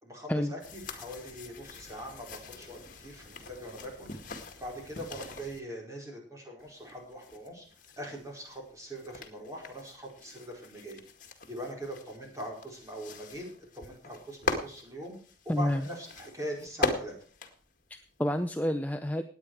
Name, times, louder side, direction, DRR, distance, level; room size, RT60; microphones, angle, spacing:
voice 1, 0.0-7.7 8.0-11.0 11.5-13.5 13.7-15.1 15.4-17.1, equal, 20° right, -1 dB, 4.8 m, -42 dB
sound 1, 0.6-5.6 6.6-18.4, left 3 dB, 45° left, 2.0 m, -41 dB
voice 2, 15.5-15.9 17.9-19.2, left 1 dB, 10° left, 8 dB, 0.6 m, -29 dB
18.0 x 9.6 x 4.8 m, 0.43 s
head